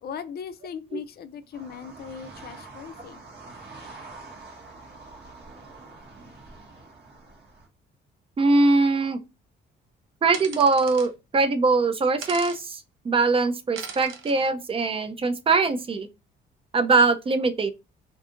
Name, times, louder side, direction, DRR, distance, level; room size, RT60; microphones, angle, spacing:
voice 1, 0.0-3.2, left 7 dB, 50° left, 0.5 m, -38 dB
sound 1, 1.5-7.7, right 3 dB, 55° right, 1.1 m, -45 dB
voice 2, 8.4-9.2 10.2-16.1 16.7-17.7, right 3 dB, 30° right, 0.4 m, -22 dB
sound 2, 10.3-11.1 12.2-12.6 13.8-14.3, right 6 dB, 80° right, 0.6 m, -38 dB
2.6 x 2.4 x 3.6 m
cardioid pair, 90°, 20 cm